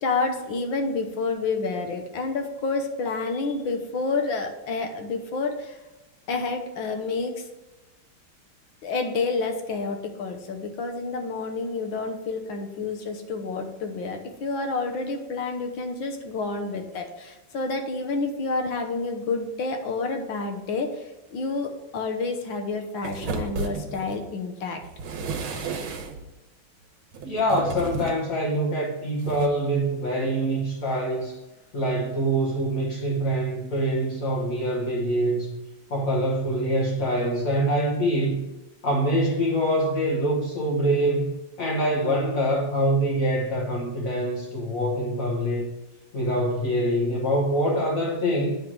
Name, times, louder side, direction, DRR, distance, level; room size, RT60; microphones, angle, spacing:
voice 1, 0.0-5.8 6.3-7.5 8.8-24.8, left 3 dB, 70° left, 4 dB, 1.8 m, -29 dB
sound 1, 23.0-24.2 24.8-26.3 27.1-28.3 29.2-29.5, right 4 dB, 75° right, 1.7 m, -33 dB
voice 2, 27.2-31.4 31.7-35.5 35.9-38.5 38.8-41.3 41.6-45.7 46.1-48.6, right 1 dB, 45° left, -3 dB, 1.4 m, -25 dB
9.2 x 3.5 x 6.0 m, 1.1 s
omnidirectional pair, 2.3 m